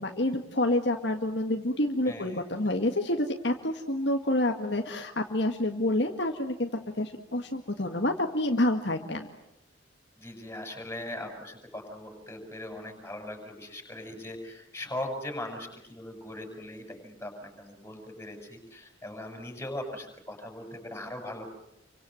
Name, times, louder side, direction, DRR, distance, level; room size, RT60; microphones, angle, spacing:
voice 1, 0.0-6.7 7.0-9.3, left 1 dB, 60° left, 3 dB, 1.9 m, -28 dB
voice 2, 2.0-2.4 10.2-21.5, left 1 dB, 10° left, 4 dB, 6.8 m, -40 dB
30.0 x 24.5 x 7.8 m, 0.85 s
head